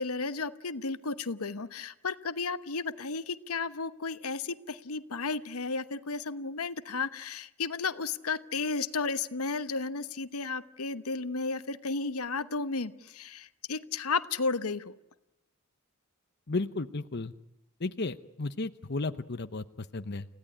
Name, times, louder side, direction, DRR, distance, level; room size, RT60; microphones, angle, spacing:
voice 1, 0.0-15.0, left 4 dB, 90° left, 13 dB, 1.1 m, -33 dB
voice 2, 16.5-17.3 17.8-20.3, left 3 dB, 50° left, 10 dB, 0.9 m, -34 dB
29.5 x 16.5 x 9.9 m, 0.92 s
head